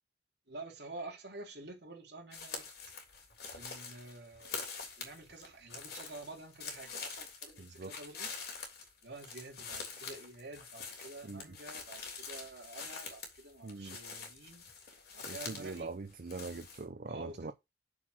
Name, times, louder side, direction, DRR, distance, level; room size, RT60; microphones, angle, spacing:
voice 1, 0.5-2.7 3.5-4.6 5.0-8.3 9.0-14.6 15.1-15.9 17.1-17.5, right 2 dB, 70° right, 3.1 m, -49 dB
sound 1, 2.3-15.8 16.1-16.8, left 5 dB, 65° left, 3.4 m, -45 dB
voice 2, 7.6-7.9 11.2-11.4 13.6-14.0 15.3-17.5, right 3 dB, 55° right, 0.6 m, -42 dB
6.9 x 4.9 x 6.2 m
head